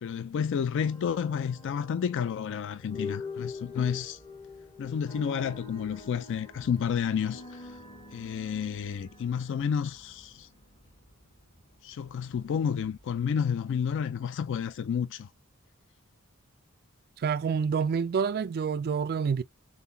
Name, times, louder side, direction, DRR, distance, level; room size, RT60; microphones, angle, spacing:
voice 1, 0.0-4.2 4.8-7.8 8.1-10.5 11.8-15.3, left 7 dB, 55° left, 0.3 m, -30 dB
sound 1, 0.7-10.8, left 4 dB, 20° left, 1.0 m, -44 dB
sound 2, 3.5-13.2, equal, 40° left, 1.2 m, -61 dB
voice 2, 17.2-19.4, right 6 dB, 45° right, 0.3 m, -28 dB
3.9 x 3.9 x 2.6 m
head